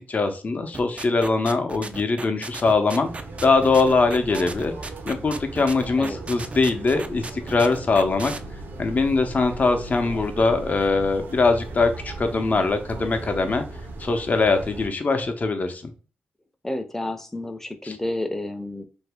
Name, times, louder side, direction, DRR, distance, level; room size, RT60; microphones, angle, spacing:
voice 1, 0.1-3.1 3.4-4.7 5.1-8.3 8.8-13.6 14.0-15.8 17.8-18.0, left 3 dB, 45° left, 6 dB, 0.7 m, -22 dB
sound 1, 0.7-8.4, right 3 dB, 35° right, 0.4 m, -35 dB
sound 2, 3.0-14.9, right 2 dB, 75° right, 0.8 m, -37 dB
voice 2, 16.6-18.8, left 1 dB, 10° left, 7 dB, 0.6 m, -30 dB
2.9 x 2.7 x 3.4 m, 0.35 s
cardioid pair, 65°, 4 cm